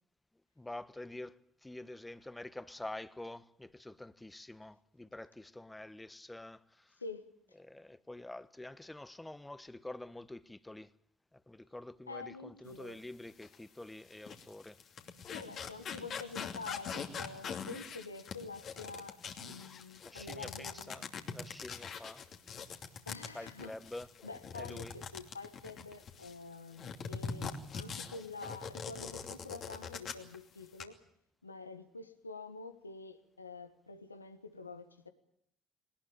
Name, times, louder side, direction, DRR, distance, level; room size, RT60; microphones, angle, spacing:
voice 1, 0.6-6.9 7.6-10.9 11.3-14.8 20.0-22.2 23.3-24.1 24.5-24.9, left 1 dB, 10° left, 1.3 m, -47 dB
voice 2, 12.1-13.0 15.3-21.0 23.1-23.7 24.2-31.0 31.4-35.1, left 3 dB, 90° left, 1.4 m, -47 dB
sound 1, 13.4-13.6 14.1-26.4 26.8-30.4 30.6-30.8, left 6 dB, 50° left, 2.7 m, -43 dB
21.5 x 19.5 x 9.0 m
figure-of-eight pair, 50°, 0 cm